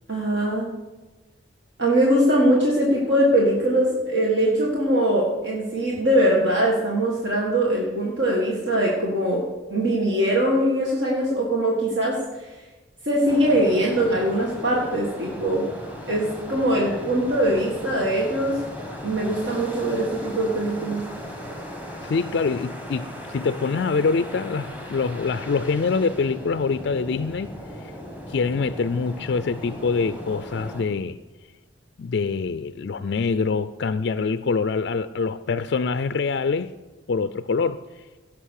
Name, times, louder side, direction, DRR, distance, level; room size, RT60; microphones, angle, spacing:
voice 1, 0.1-0.7 1.8-9.4 9.7-12.5 13.0-15.6 16.1-18.6 19.0-21.0, right 1 dB, 60° right, -3 dB, 1.8 m, -22 dB
sound 1, 13.3-30.8, equal, 10° right, 1.6 m, -37 dB
voice 2, 22.0-27.5 28.3-31.2 32.0-36.7 37.1-37.8, left 4 dB, 55° left, 12 dB, 0.4 m, -25 dB
17.0 x 6.0 x 6.5 m, 1.2 s
head